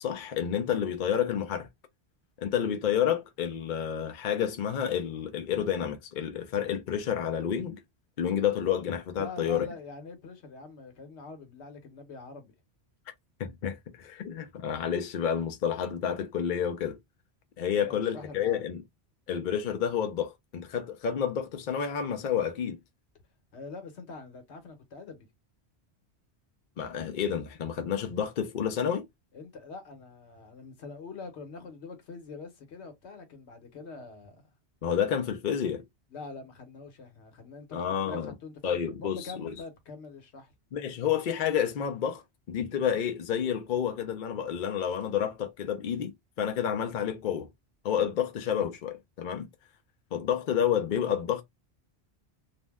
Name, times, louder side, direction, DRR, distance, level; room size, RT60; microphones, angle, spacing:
voice 1, 0.0-1.7 2.4-7.8 8.2-9.7 13.4-17.0 17.6-18.8 19.3-22.8 26.8-29.1 34.8-35.8 37.7-38.3 38.6-39.5 40.7-42.2 42.5-47.5 47.8-49.5 50.1-51.4, left 8 dB, 55° left, 0.6 m, -29 dB
voice 2, 9.1-12.5 17.7-18.7 23.5-25.3 29.3-34.5 36.1-40.5, left 4 dB, 85° left, 1.2 m, -44 dB
2.6 x 2.0 x 3.3 m
omnidirectional pair, 1.1 m